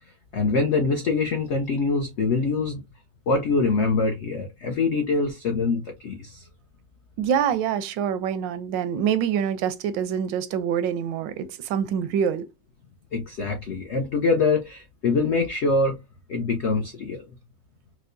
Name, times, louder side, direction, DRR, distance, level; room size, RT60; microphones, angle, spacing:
voice 1, 0.3-2.8 3.3-6.5 13.1-16.0 16.3-17.2, left 3 dB, 90° left, 0.6 m, -24 dB
voice 2, 7.2-12.5, right 8 dB, 85° right, 1.2 m, -25 dB
4.6 x 2.1 x 2.5 m
omnidirectional pair, 1.9 m